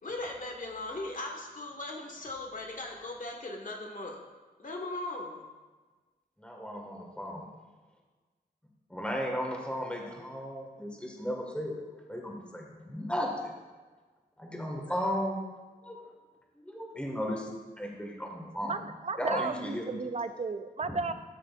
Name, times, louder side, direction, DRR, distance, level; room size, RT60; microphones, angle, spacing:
voice 1, 0.0-4.2 4.6-5.4, left 2 dB, 55° left, 1 dB, 1.5 m, -38 dB
voice 2, 6.4-7.5 8.9-13.5 14.4-15.4 15.8-16.0 16.6-17.5 17.8-18.7 19.2-20.0 20.9-21.0, equal, 5° left, 0 dB, 1.7 m, -35 dB
voice 3, 18.6-21.1, right 4 dB, 45° right, 10 dB, 0.5 m, -34 dB
13.0 x 6.3 x 2.5 m, 1.3 s
cardioid pair, 65°, 16 cm